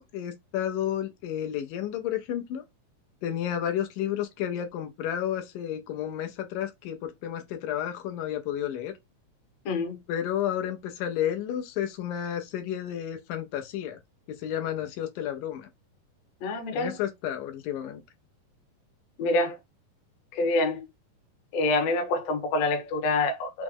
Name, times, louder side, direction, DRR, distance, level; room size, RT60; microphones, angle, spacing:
voice 1, 0.0-2.6 3.2-8.9 10.1-14.0 14.3-15.7 16.7-18.0, left 10 dB, 85° left, 2.3 m, -31 dB
voice 2, 9.7-10.0 16.4-16.9 19.2-19.6 20.3-20.9 21.5-23.6, left 2 dB, 65° left, 1.8 m, -26 dB
5.9 x 2.1 x 3.5 m
omnidirectional pair, 3.8 m